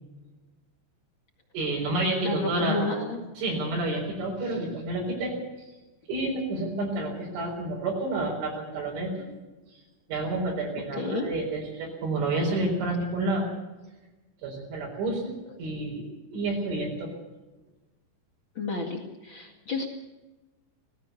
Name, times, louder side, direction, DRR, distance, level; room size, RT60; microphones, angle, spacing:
voice 1, 1.5-2.9 3.4-5.4 6.1-9.2 10.1-13.5 14.4-15.3 15.6-16.0 16.3-17.1, right 2 dB, 70° right, -3 dB, 6.7 m, -29 dB
voice 2, 2.2-3.2 10.9-11.2 18.5-19.9, left 3 dB, 60° left, 2 dB, 1.2 m, -30 dB
19.5 x 16.0 x 8.3 m, 1.1 s
omnidirectional pair, 5.8 m